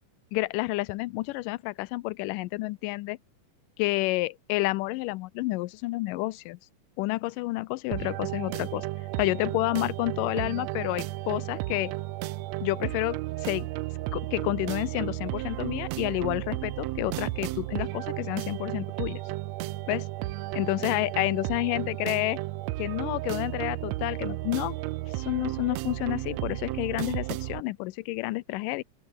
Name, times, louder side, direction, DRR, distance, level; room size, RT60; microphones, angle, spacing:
voice 1, 0.3-3.2 3.8-6.6 7.0-8.9 9.2-11.9 12.6-13.7 14.1-19.2 19.9-20.1 20.5-22.4 22.8-24.8 25.1-28.8, left 20 dB, 85° left, 2.2 m, -30 dB
sound 1, 7.9-27.6, right 18 dB, 85° right, 1.6 m, -33 dB
open air
omnidirectional pair, 3.8 m